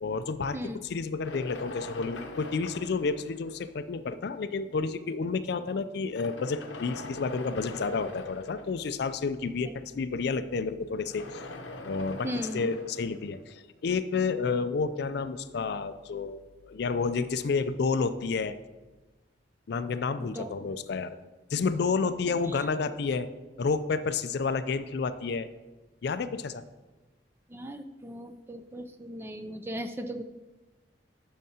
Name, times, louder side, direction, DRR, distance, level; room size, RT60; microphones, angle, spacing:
voice 1, 0.0-11.4 11.8-16.4 16.7-18.5 19.7-21.2 21.5-23.3 23.6-25.5 26.0-26.6, left 4 dB, 60° left, 12 dB, 0.4 m, -30 dB
sound 1, 1.2-3.9 4.8-4.9 6.0-9.0 10.9-13.9, left 2 dB, 85° left, 0.8 m, -43 dB
voice 2, 12.2-12.7 20.2-20.5 27.5-30.2, equal, 15° right, 8 dB, 0.4 m, -37 dB
10.5 x 6.5 x 2.8 m, 1.2 s
head